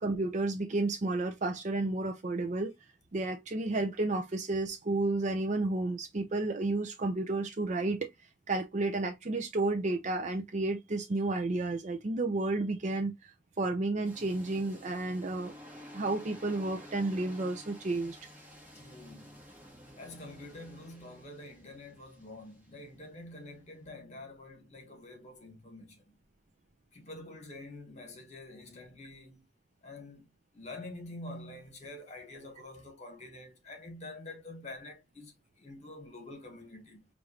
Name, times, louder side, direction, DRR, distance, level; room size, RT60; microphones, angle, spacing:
voice 1, 0.0-2.7 3.1-8.1 8.5-13.3 13.6-15.5 15.9-18.2, right 2 dB, 40° right, 0.5 m, -31 dB
sound 1, 14.0-23.9, equal, 10° right, 1.4 m, -52 dB
voice 2, 18.7-19.4 20.0-26.2 26.9-29.5 29.8-30.3 30.5-37.1, left 2 dB, 40° left, 1.6 m, -47 dB
4.8 x 2.6 x 3.0 m
head